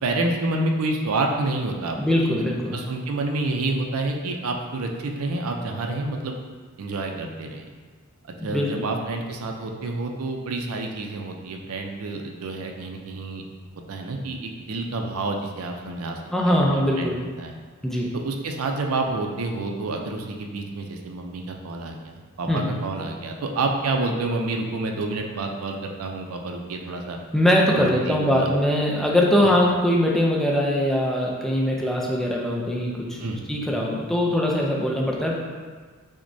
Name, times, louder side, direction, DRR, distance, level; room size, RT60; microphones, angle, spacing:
voice 1, 0.0-2.3 2.7-6.4 6.8-7.7 8.4-13.4 13.9-16.2 16.5-17.6 18.1-27.2 27.7-28.5 33.2-33.6, right 2 dB, 80° right, 2 dB, 0.4 m, -28 dB
voice 2, 2.0-2.8 8.4-8.9 16.3-17.2 17.8-18.1 22.5-22.7 27.3-33.2 33.5-35.3, left 1 dB, ahead, -3 dB, 0.4 m, -22 dB
6.0 x 2.1 x 2.6 m, 1.5 s
head